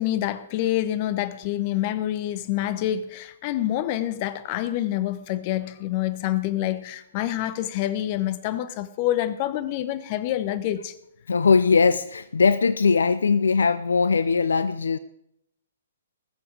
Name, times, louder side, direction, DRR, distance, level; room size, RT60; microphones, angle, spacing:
voice 1, 0.0-10.9, left 13 dB, 35° left, 0.8 m, -27 dB
voice 2, 11.3-15.0, left 5 dB, 70° left, 0.4 m, -20 dB
19.5 x 7.1 x 4.8 m
figure-of-eight pair, 125°, 0 cm